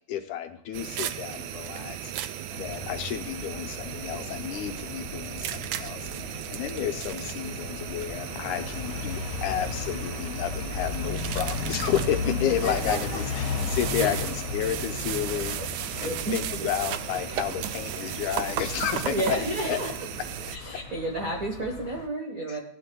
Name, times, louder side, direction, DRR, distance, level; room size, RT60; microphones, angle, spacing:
voice 1, 0.1-15.6 16.0-19.8 22.5-22.6, left 10 dB, 80° left, 7 dB, 2.1 m, -31 dB
sound 1, 0.7-20.6, right 11 dB, 90° right, 1.4 m, -35 dB
sound 2, 2.5-22.1, left 4 dB, 60° left, 2.3 m, -36 dB
voice 2, 6.1-6.6 12.2-13.2 14.0-14.1 16.0-16.7 18.0-18.1 19.1-19.9 20.5-22.6, right 1 dB, 60° right, 0 dB, 0.8 m, -32 dB
18.0 x 11.0 x 2.2 m, 0.67 s
omnidirectional pair, 3.5 m